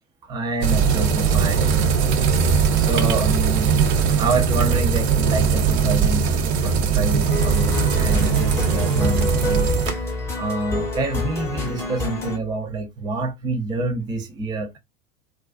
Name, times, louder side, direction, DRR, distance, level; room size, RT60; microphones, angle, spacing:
voice 1, 0.3-1.9 2.7-3.7 4.2-14.8, right 2 dB, 10° right, 0.4 m, -27 dB
sound 1, 0.6-9.9, right 6 dB, 55° right, 0.6 m, -20 dB
sound 2, 7.3-12.4, left 2 dB, 5° left, 0.8 m, -27 dB
2.4 x 2.2 x 2.3 m
figure-of-eight pair, 85°, 39 cm